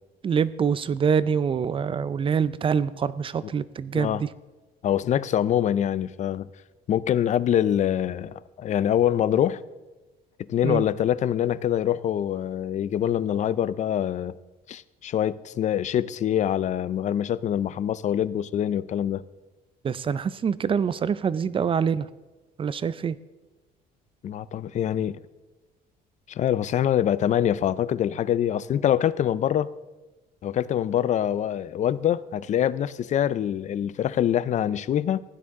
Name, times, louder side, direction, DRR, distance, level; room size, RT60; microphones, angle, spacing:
voice 1, 0.2-4.3 10.6-10.8 19.8-22.1 22.6-23.2, right 6 dB, 30° right, 0.4 m, -25 dB
voice 2, 4.8-6.5 6.9-9.6 10.5-14.3 14.7-19.2 24.2-25.2 26.3-29.7 30.4-35.2, left 10 dB, 45° left, 0.5 m, -24 dB
16.0 x 9.6 x 3.7 m
cardioid pair, 110°, 17 cm